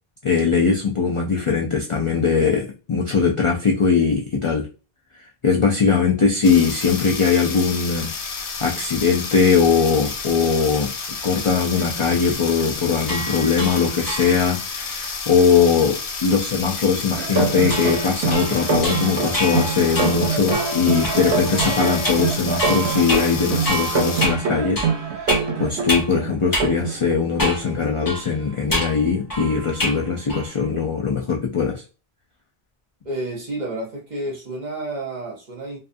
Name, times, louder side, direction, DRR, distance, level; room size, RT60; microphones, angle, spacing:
voice 1, 0.2-4.7 5.4-10.9 11.2-24.9 25.3-31.8, left 5 dB, 55° left, 0.3 m, -20 dB
sound 1, 6.4-24.3, left 4 dB, 90° left, 0.9 m, -31 dB
sound 2, 13.0-14.6 17.7-26.2 26.5-26.7 27.4-27.7 28.1-30.0 30.3-30.7, equal, 25° left, 0.7 m, -28 dB
sound 3, 17.1-27.2, right 5 dB, 90° right, 0.9 m, -25 dB
voice 2, 33.0-35.8, right 1 dB, 50° right, 0.8 m, -30 dB
2.4 x 2.4 x 2.5 m
omnidirectional pair, 1.1 m